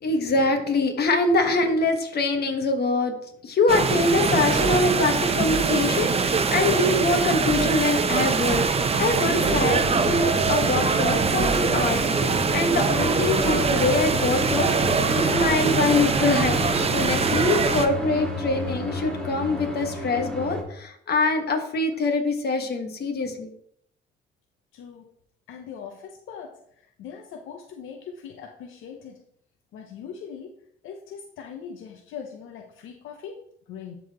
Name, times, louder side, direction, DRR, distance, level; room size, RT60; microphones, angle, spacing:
voice 1, 0.0-3.1 3.4-23.5, left 2 dB, 55° left, 5 dB, 1.3 m, -24 dB
sound 1, 3.7-17.9, right 5 dB, 30° right, 0.7 m, -23 dB
sound 2, 9.0-20.6, left 1 dB, 5° left, 1.7 m, -31 dB
voice 2, 24.7-25.1 25.5-29.2 29.7-30.6 30.8-34.0, left 7 dB, 85° left, 3 dB, 0.7 m, -41 dB
12.0 x 4.0 x 2.9 m, 0.69 s
cardioid pair, 90°, 20 cm